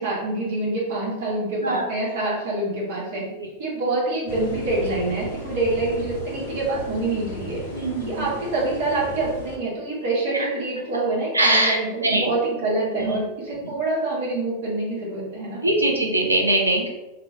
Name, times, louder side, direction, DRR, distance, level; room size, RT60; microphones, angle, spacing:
voice 1, 0.0-3.2 3.6-7.6 8.0-15.6, right 2 dB, 50° right, -5 dB, 1.4 m, -26 dB
sound 1, 4.3-9.6, left 1 dB, 55° left, 0.9 m, -36 dB
voice 2, 7.7-8.3 11.3-11.8 12.0-12.3 13.0-13.2 13.6-13.7 15.6-16.9, right 1 dB, 80° right, 1 dB, 0.5 m, -22 dB
3.0 x 2.9 x 2.7 m, 1.0 s
figure-of-eight pair, 90°, 0 cm